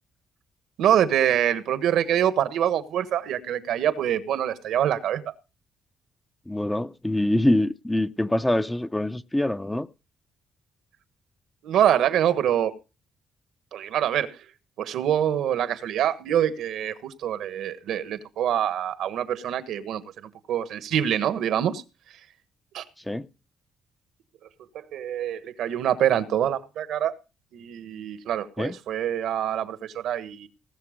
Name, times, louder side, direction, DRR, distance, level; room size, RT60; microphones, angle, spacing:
voice 1, 0.8-5.2 11.6-12.7 13.7-14.4 14.8-20.0 20.5-21.8 22.7-22.8 24.7-27.1 27.5-30.5, right 10 dB, 80° right, 1.4 m, -25 dB
voice 2, 6.5-9.9 23.1-23.3 28.6-28.8, left 1 dB, 10° left, 0.6 m, -24 dB
19.0 x 6.8 x 5.1 m
cardioid pair, 90°, 0 cm